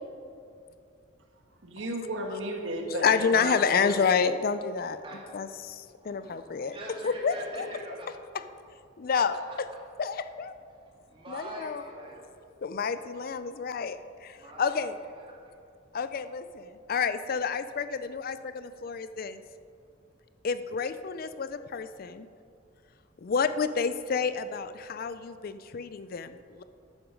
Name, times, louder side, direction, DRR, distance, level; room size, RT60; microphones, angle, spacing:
voice 1, 1.6-4.0, right 1 dB, 85° right, 3 dB, 1.5 m, -34 dB
voice 2, 3.0-5.0 5.3-6.8 7.0-7.6 9.0-9.7 10.0-10.6 11.3-11.8 12.6-15.0 15.9-19.4 20.4-22.3 23.2-26.6, left 5 dB, 50° left, 12 dB, 0.4 m, -29 dB
voice 3, 6.0-8.1 10.7-12.2 14.4-14.8 15.1-15.2, right 1 dB, 30° right, -4 dB, 2.7 m, -43 dB
12.5 x 9.6 x 5.2 m, 2.4 s
head